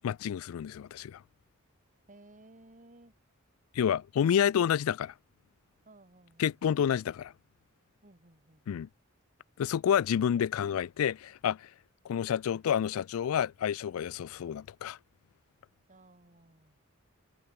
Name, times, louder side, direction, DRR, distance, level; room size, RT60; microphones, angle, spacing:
voice 1, 0.0-1.2 3.7-5.1 6.4-7.3 8.7-8.9 9.6-11.7 12.1-15.0, left 8 dB, 85° left, 0.3 m, -29 dB
voice 2, 2.1-3.1 5.8-6.8 8.0-8.9 15.9-16.8, right 2 dB, 40° right, 2.8 m, -58 dB
head